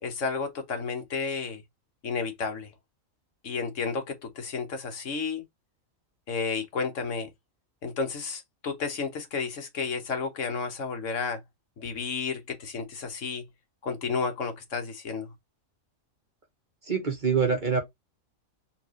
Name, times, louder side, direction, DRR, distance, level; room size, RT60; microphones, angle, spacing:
voice 1, 0.0-1.6 2.0-2.7 3.4-5.4 6.3-7.3 7.8-11.4 11.8-13.4 13.8-15.3, left 5 dB, 65° left, 1.4 m, -32 dB
voice 2, 16.8-17.8, right 6 dB, 40° right, 1.2 m, -25 dB
4.5 x 3.0 x 3.0 m
omnidirectional pair, 1.4 m